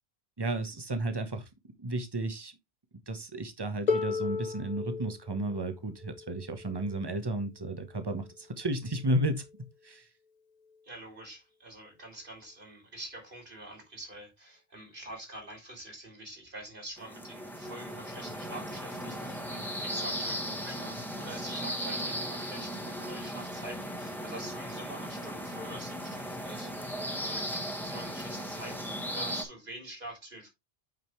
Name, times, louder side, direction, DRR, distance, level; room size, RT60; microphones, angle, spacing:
voice 1, 0.4-1.4 1.8-2.5 3.1-9.4 9.8-10.1, right 1 dB, 25° right, 1.1 m, -33 dB
Harp, 3.9-9.7 10.7-10.8, left 5 dB, 45° left, 0.9 m, -37 dB
voice 2, 10.8-30.5, right 1 dB, 55° right, 3.2 m, -46 dB
sound 1, 17.0-29.4, equal, ahead, 1.5 m, -37 dB
9.1 x 5.1 x 3.1 m
omnidirectional pair, 1.1 m